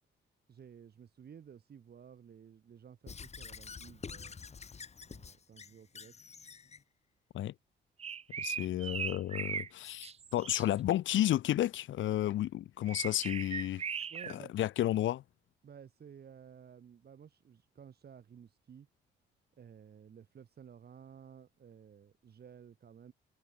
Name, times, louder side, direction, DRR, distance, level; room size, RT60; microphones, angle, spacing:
voice 1, 0.5-4.4 5.1-6.1 8.6-8.8 14.1-14.5 15.6-18.9 19.6-23.1, right 8 dB, 55° right, 5.1 m, -54 dB
Squeak / Writing, 3.1-6.8, left 5 dB, 35° left, 1.6 m, -48 dB
sound 1, 8.0-9.7 10.0-10.7 12.9-14.3, right 7 dB, 30° right, 0.5 m, -39 dB
voice 2, 8.4-13.8 14.3-15.2, left 13 dB, 75° left, 1.3 m, -32 dB
cardioid pair, 90°, 20 cm